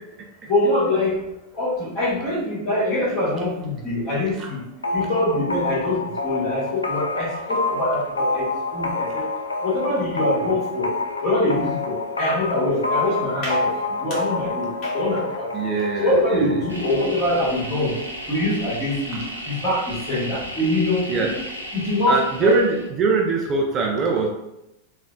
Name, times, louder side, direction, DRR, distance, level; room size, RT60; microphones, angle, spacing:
voice 1, 0.5-1.2 1.5-4.6 4.9-9.3 9.6-10.9 11.2-13.7 14.0-15.5 16.0-17.9 18.3-21.3 21.7-22.6, left 1 dB, 35° left, -6 dB, 1.5 m, -24 dB
sound 1, 4.8-18.3, left 3 dB, 80° left, 0.3 m, -28 dB
voice 2, 15.5-16.8 21.1-21.3 22.1-24.3, right 4 dB, 30° right, 0 dB, 0.4 m, -22 dB
sound 2, 16.7-22.9, equal, 85° right, 0.5 m, -35 dB
3.5 x 2.1 x 2.5 m, 0.88 s
figure-of-eight pair, 90°, 0 cm